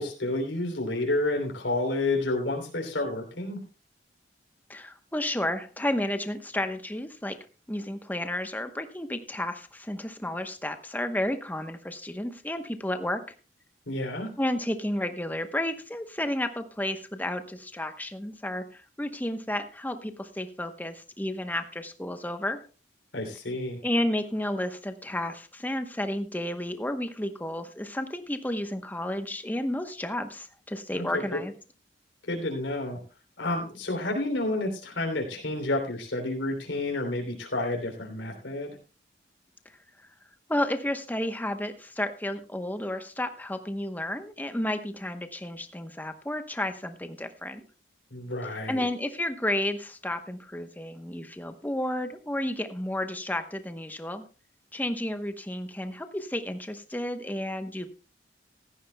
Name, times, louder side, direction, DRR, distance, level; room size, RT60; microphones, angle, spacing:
voice 1, 0.0-3.6 13.9-14.3 23.1-23.8 30.9-31.4 32.3-33.0 33.4-38.7 48.1-48.8, left 2 dB, 80° left, 1 dB, 3.1 m, -30 dB
voice 2, 4.7-7.4 7.7-13.2 14.4-22.6 23.8-31.5 40.5-47.6 48.7-54.2 54.7-57.9, left 1 dB, 10° left, 8 dB, 0.9 m, -32 dB
16.0 x 14.0 x 2.2 m, 0.34 s
head